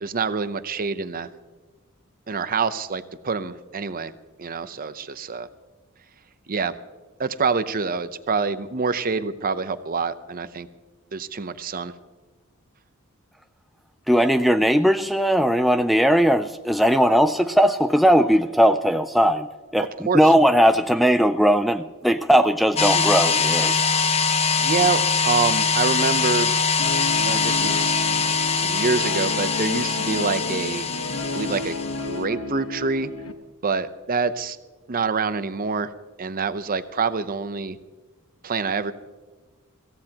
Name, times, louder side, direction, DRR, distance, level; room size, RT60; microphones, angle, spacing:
voice 1, 0.0-1.3 2.3-4.1 4.4-5.5 6.5-6.7 7.2-10.7 11.1-11.9 20.1-20.3 24.6-26.5 27.3-28.1 28.6-30.9 31.3-33.1 33.6-34.6 34.9-35.9 36.2-37.8 38.4-38.9, right 4 dB, 40° right, 12 dB, 0.7 m, -26 dB
voice 2, 14.1-19.5 19.7-19.8 20.1-23.9, equal, ahead, 7 dB, 0.3 m, -18 dB
sound 1, 22.8-32.1, left 5 dB, 30° left, 0.8 m, -23 dB
Guitar, 26.8-33.3, left 2 dB, 75° left, 1.1 m, -32 dB
22.5 x 16.5 x 2.9 m, 1.3 s
head